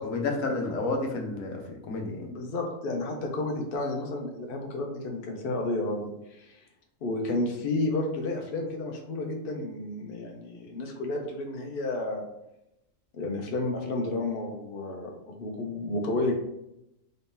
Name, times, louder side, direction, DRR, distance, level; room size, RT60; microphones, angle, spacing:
voice 1, 0.0-2.3, left 3 dB, 75° left, 2 dB, 1.1 m, -31 dB
voice 2, 2.2-6.6 7.0-12.3 13.1-16.3, left 2 dB, 50° left, 2 dB, 0.7 m, -31 dB
4.0 x 2.8 x 3.6 m, 0.85 s
omnidirectional pair, 1.4 m